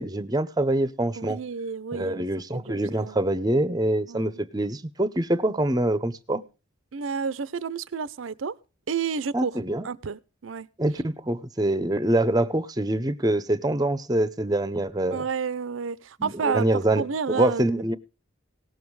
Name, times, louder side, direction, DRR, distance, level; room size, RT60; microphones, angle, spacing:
voice 1, 0.0-1.4 1.9-6.4 9.3-9.9 10.8-15.3 16.2-18.0, right 1 dB, 20° right, 0.7 m, -25 dB
voice 2, 1.2-2.3 2.5-3.2 4.1-4.4 6.9-8.5 8.9-9.5 9.8-10.7 15.1-16.7 17.0-17.7, right 6 dB, 75° right, 0.6 m, -30 dB
18.0 x 7.2 x 4.7 m
head